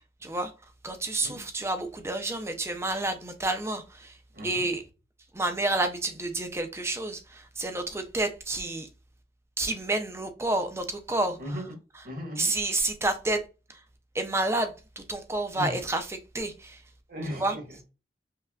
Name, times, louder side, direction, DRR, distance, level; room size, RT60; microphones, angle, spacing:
voice 1, 0.8-4.2 4.4-4.8 5.3-8.9 9.6-11.4 12.4-13.4 13.7-13.8 14.1-16.0 16.3-16.8 17.4-17.6, right 2 dB, 15° right, 0.5 m, -29 dB
voice 2, 4.3-4.6 11.4-11.7 12.0-12.5 15.5-15.8 17.1-17.8, equal, 55° right, 1.7 m, -36 dB
5.5 x 2.4 x 2.3 m
head